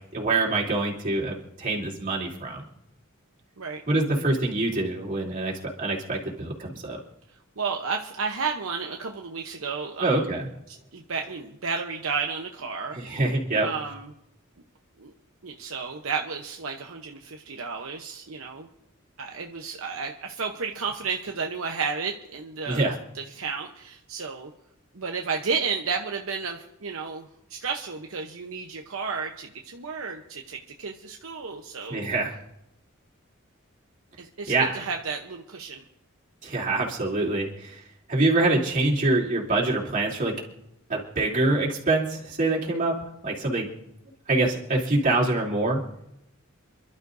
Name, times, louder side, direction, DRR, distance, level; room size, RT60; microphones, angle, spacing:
voice 1, 0.1-2.6 3.9-5.5 5.8-7.0 10.0-10.5 12.9-13.7 22.7-23.0 31.9-32.3 34.5-34.8 36.4-37.8 38.1-40.3 40.9-42.9 43.2-43.7 44.3-45.8, right 2 dB, 40° right, -4 dB, 3.2 m, -25 dB
voice 2, 7.6-10.3 10.7-13.0 13.6-14.1 15.0-15.1 15.4-18.7 19.2-24.5 24.9-32.0 34.2-35.8, right 5 dB, 75° right, 2 dB, 0.9 m, -32 dB
28.0 x 12.0 x 2.7 m, 0.82 s
head